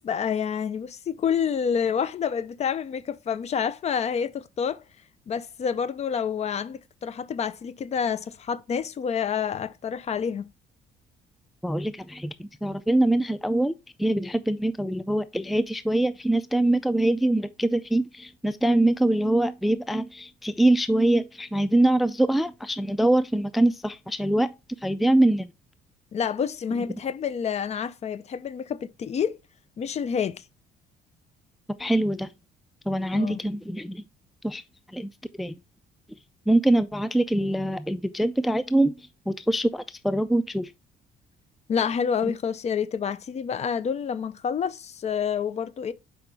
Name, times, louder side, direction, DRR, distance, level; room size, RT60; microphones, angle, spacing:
voice 1, 0.0-4.8 5.3-10.5 26.1-29.4 29.8-30.4 33.1-33.4 41.7-45.9, left 7 dB, 40° left, 0.6 m, -28 dB
voice 2, 11.6-13.7 14.0-24.5 24.8-25.5 31.8-32.3 32.9-34.0 34.4-34.6 34.9-35.1 35.4-35.5 36.5-38.9 39.3-40.7, right 1 dB, ahead, 0.4 m, -23 dB
6.8 x 5.0 x 3.4 m
cardioid pair, 110°, 17 cm